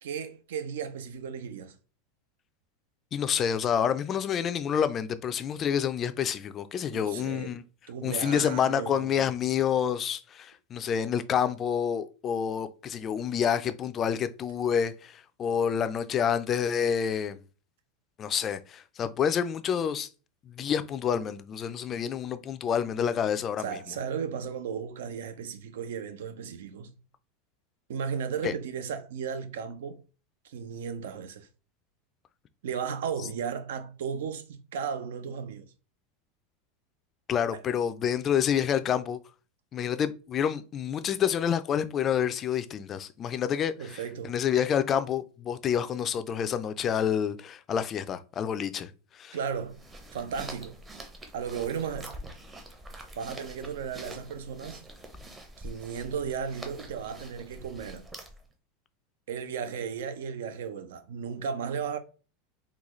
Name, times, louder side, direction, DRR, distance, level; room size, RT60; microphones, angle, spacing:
voice 1, 0.0-1.8 6.9-7.6 7.9-9.3 23.6-26.9 27.9-30.0 30.4-31.5 32.6-35.7 37.5-37.6 43.8-44.4 49.3-49.8 50.1-50.8 51.3-52.2 53.2-54.8 55.6-58.0 59.3-62.0, right 7 dB, 90° right, 0.5 m, -35 dB
voice 2, 3.1-7.6 8.0-17.4 18.2-20.1 20.5-23.8 28.4-28.5 37.3-39.2 39.7-44.0 44.2-48.9 49.2-49.4, left 8 dB, 30° left, 0.3 m, -28 dB
sound 1, 49.5-58.5, right 1 dB, 15° right, 0.6 m, -45 dB
3.8 x 2.3 x 3.0 m
supercardioid pair, 145°, 0 cm